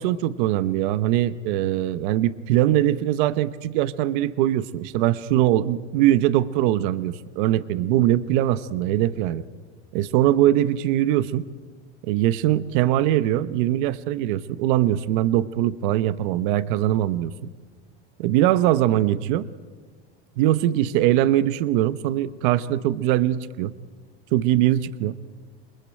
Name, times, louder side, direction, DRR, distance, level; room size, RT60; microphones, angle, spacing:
voice 1, 0.0-9.4 9.9-11.5 12.0-17.5 18.2-19.5 20.4-23.7 24.3-25.1, right 13 dB, 50° right, 15 dB, 0.9 m, -22 dB
28.5 x 22.0 x 8.9 m, 1.4 s
supercardioid pair, 170°, 33 cm